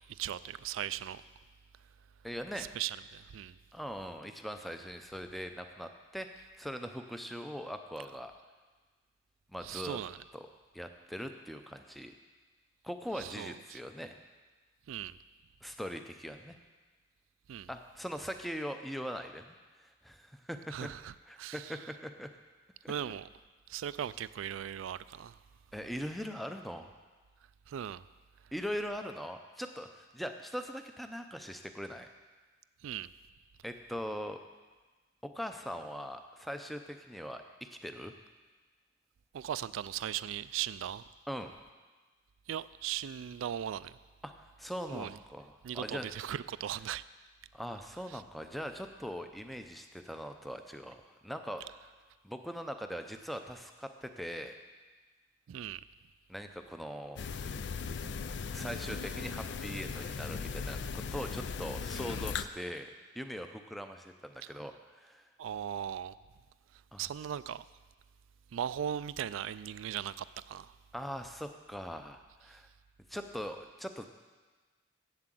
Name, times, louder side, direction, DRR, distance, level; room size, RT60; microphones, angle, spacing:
voice 1, 0.1-1.2 2.6-3.6 9.6-10.2 13.2-13.8 14.9-15.2 17.5-17.7 20.7-21.8 22.9-23.3 23.7-25.4 27.7-28.0 32.8-33.1 39.3-41.1 42.5-44.0 44.9-45.2 45.6-47.0 48.1-48.2 55.5-55.8 64.4-64.5 65.4-66.1 67.0-67.6 68.5-70.7, right 10 dB, 85° right, 17 dB, 0.3 m, -38 dB
voice 2, 2.2-2.7 3.7-8.3 9.5-10.0 10.3-10.5 10.7-12.1 12.8-14.2 15.6-16.6 17.7-19.6 19.8-20.9 21.3-22.3 22.8-22.9 25.7-26.9 28.5-32.1 33.6-34.4 35.2-38.1 41.3-41.5 44.2-44.3 44.6-46.1 47.5-51.6 52.2-54.6 56.3-57.2 58.5-65.2 66.9-67.1 70.9-72.7 73.1-74.1, equal, ahead, 6 dB, 0.5 m, -41 dB
sound 1, 57.2-62.5, left 5 dB, 60° left, 0.4 m, -38 dB
8.0 x 7.5 x 7.6 m, 1.3 s
head